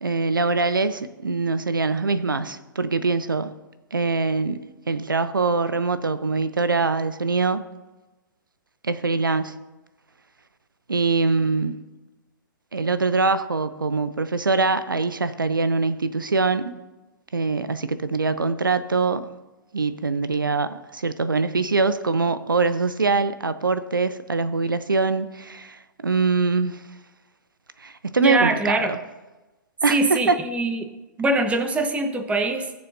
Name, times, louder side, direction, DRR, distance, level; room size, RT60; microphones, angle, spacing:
voice 1, 0.0-3.6 3.9-4.6 4.9-7.6 8.8-9.6 10.9-11.9 12.7-16.7 17.3-19.3 19.7-26.8 27.8-29.0 29.8-30.4, right 4 dB, 80° right, 0.7 m, -23 dB
voice 2, 28.2-28.9 29.9-30.9 31.2-32.7, right 2 dB, 10° right, 1.1 m, -23 dB
20.0 x 7.0 x 2.6 m
figure-of-eight pair, 110°, 11 cm